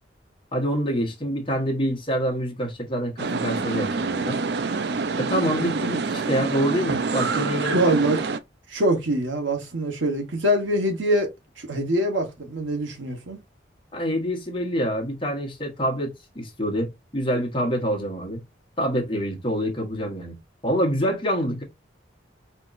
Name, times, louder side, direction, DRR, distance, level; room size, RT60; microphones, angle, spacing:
voice 1, 0.5-4.4 5.1-8.0 13.9-18.4 18.8-20.3 20.6-21.6, equal, 25° left, 1.1 m, -26 dB
sound 1, 3.2-8.4, right 4 dB, 60° right, 0.4 m, -26 dB
voice 2, 7.7-8.2 8.7-13.4, right 1 dB, 90° right, 1.3 m, -24 dB
4.3 x 2.9 x 2.5 m
head